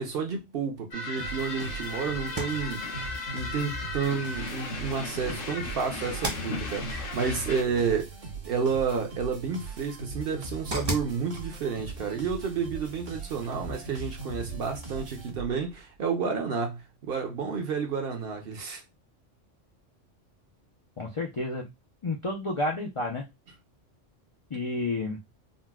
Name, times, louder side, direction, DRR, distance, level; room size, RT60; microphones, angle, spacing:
voice 1, 0.0-2.9 3.3-8.1 8.4-18.8, right 5 dB, 55° right, 0.8 m, -30 dB
sound 1, 0.9-7.6, left 3 dB, 80° left, 1.2 m, -36 dB
sound 2, 1.2-15.7, right 3 dB, 75° right, 1.6 m, -40 dB
sound 3, 9.4-13.8, equal, 25° right, 0.7 m, -42 dB
voice 2, 21.0-21.7 22.0-23.3 24.5-25.2, left 2 dB, 45° left, 0.4 m, -30 dB
3.9 x 2.1 x 2.3 m
omnidirectional pair, 1.3 m